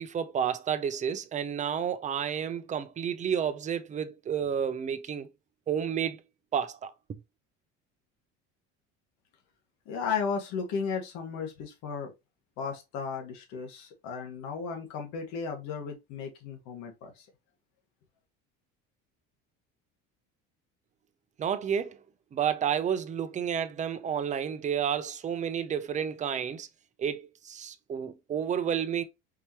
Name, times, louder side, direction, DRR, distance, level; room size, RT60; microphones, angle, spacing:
voice 1, 0.0-5.3 5.7-6.2 6.5-6.9 21.4-22.0 22.3-26.7 27.0-29.0, right 8 dB, 25° right, 0.5 m, -30 dB
voice 2, 9.8-12.1 12.6-17.3, left 5 dB, 70° left, 1.6 m, -35 dB
4.7 x 3.0 x 2.8 m
cardioid pair, 125°, 29 cm